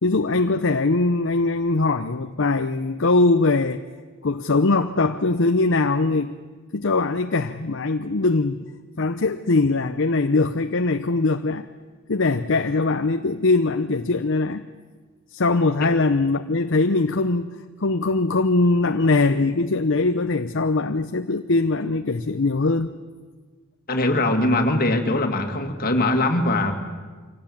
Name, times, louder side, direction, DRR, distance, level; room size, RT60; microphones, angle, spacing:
voice 1, 0.0-3.8 4.2-6.3 6.7-8.6 9.0-11.7 12.1-14.6 15.3-22.9, left 3 dB, 60° left, 8 dB, 0.8 m, -21 dB
voice 2, 23.9-26.7, left 2 dB, 45° left, 4 dB, 2.4 m, -21 dB
25.5 x 18.0 x 8.7 m, 1.4 s
head